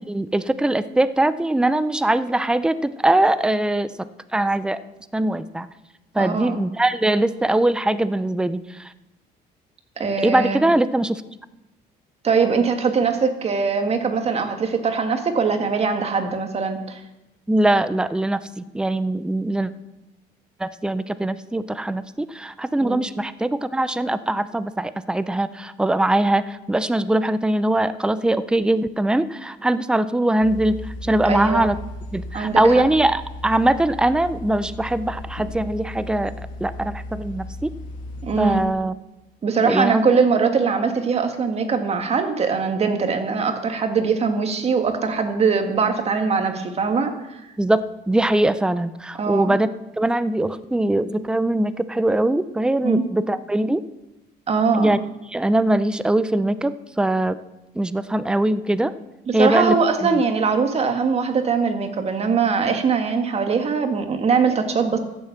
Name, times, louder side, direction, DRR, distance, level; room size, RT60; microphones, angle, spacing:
voice 1, 0.0-3.9 4.3-4.8 5.1-5.7 6.1-8.9 10.2-11.2 17.5-19.7 20.6-31.8 32.1-36.3 36.6-37.7 38.4-38.9 39.7-40.0 47.6-49.7 50.0-53.8 54.7-55.0 55.3-57.4 57.7-58.9 59.3-59.7 60.0-60.2, right 1 dB, 5° right, 13 dB, 0.6 m, -21 dB
voice 2, 6.2-6.6 10.0-10.6 12.2-17.0 22.8-23.0 31.3-31.7 32.3-32.8 38.2-38.6 39.4-47.4 49.2-49.6 52.8-53.1 54.5-54.9 59.3-65.0, right 5 dB, 40° right, 6 dB, 1.9 m, -21 dB
sound 1, 30.4-38.7, left 1 dB, 50° left, 2.6 m, -36 dB
15.0 x 7.5 x 7.2 m, 0.96 s
cardioid pair, 110°, 17 cm